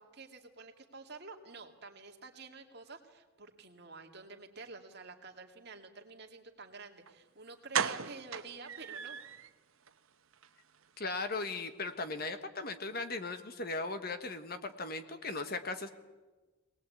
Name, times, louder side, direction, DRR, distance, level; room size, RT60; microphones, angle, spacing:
voice 1, 0.0-9.2, right 4 dB, 50° right, 3 dB, 2.2 m, -50 dB
sound 1, 7.1-7.2 7.7-9.5 9.9-10.0 10.3-10.5 10.7-10.8, right 7 dB, 75° right, 1.0 m, -36 dB
voice 2, 11.0-15.9, left 3 dB, 45° left, 8 dB, 1.4 m, -38 dB
23.5 x 19.0 x 8.5 m, 1.3 s
head